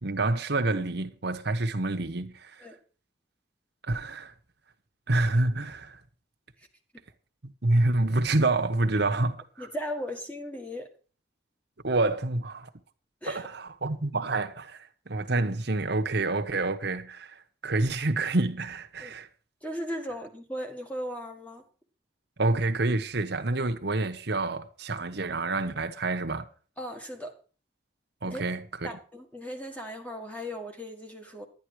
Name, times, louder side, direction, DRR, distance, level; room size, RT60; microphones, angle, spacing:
voice 1, 0.0-2.5 3.8-4.3 5.1-6.0 7.4-9.7 11.8-12.7 13.3-19.3 22.4-26.4 28.2-28.9, right 2 dB, 65° right, 1.2 m, -28 dB
voice 2, 9.6-10.9 13.2-13.4 19.0-19.1 19.6-21.6 26.8-27.3 28.2-28.4 28.8-31.5, equal, 10° left, 1.8 m, -37 dB
10.5 x 10.5 x 4.8 m
head